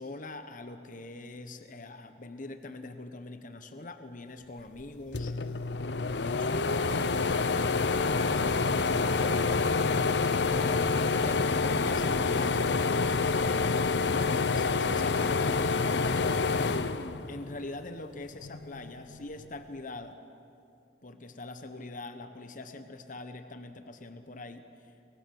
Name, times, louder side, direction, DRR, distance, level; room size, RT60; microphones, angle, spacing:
voice 1, 0.0-5.3 6.1-6.7 11.2-13.8 14.5-15.9 17.3-20.2 21.0-24.9, left 2 dB, 50° left, 9 dB, 1.2 m, -43 dB
sound 1, 4.8-4.9 5.1-17.7 18.2-19.3, left 4 dB, 80° left, 0.9 m, -27 dB
voice 2, 7.0-10.2, right 1 dB, 15° right, -3 dB, 5.7 m, -48 dB
28.5 x 22.5 x 7.8 m, 2.7 s
head